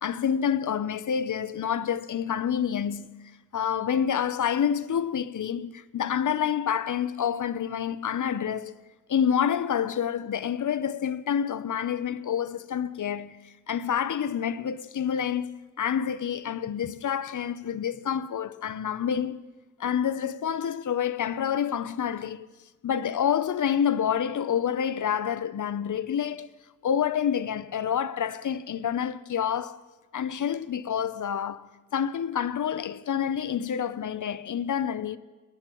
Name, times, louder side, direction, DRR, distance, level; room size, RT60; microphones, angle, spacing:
voice 1, 0.0-3.1 3.5-8.8 9.1-15.5 15.8-19.4 19.8-22.5 22.8-26.5 26.8-29.8 30.1-35.2, left 8 dB, 65° left, 0.6 m, -28 dB
25.0 x 10.5 x 3.0 m
cardioid pair, 45°, 34 cm